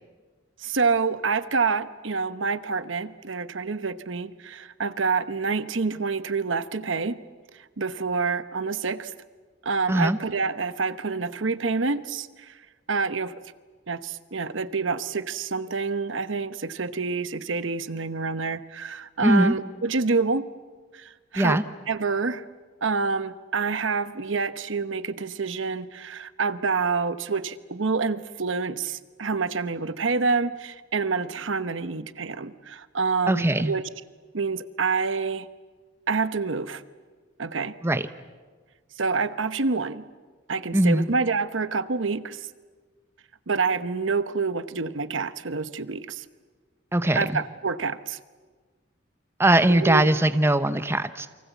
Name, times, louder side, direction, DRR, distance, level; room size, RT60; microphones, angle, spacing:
voice 1, 0.6-7.2 7.8-9.1 9.6-12.3 12.9-13.3 13.9-20.4 21.3-21.6 21.9-22.4 22.8-33.8 34.3-35.5 36.1-36.8 37.4-37.7 39.0-40.0 40.5-42.4 43.5-46.2 47.1-48.2 49.7-50.1, right 4 dB, 85° right, 13 dB, 1.0 m, -27 dB
voice 2, 9.9-10.2 19.2-19.6 21.4-21.6 33.3-33.7 37.8-38.0 40.7-41.1 46.9-47.4 49.4-51.3, right 1 dB, 15° right, 11 dB, 0.8 m, -21 dB
29.0 x 24.0 x 8.3 m, 1.4 s
head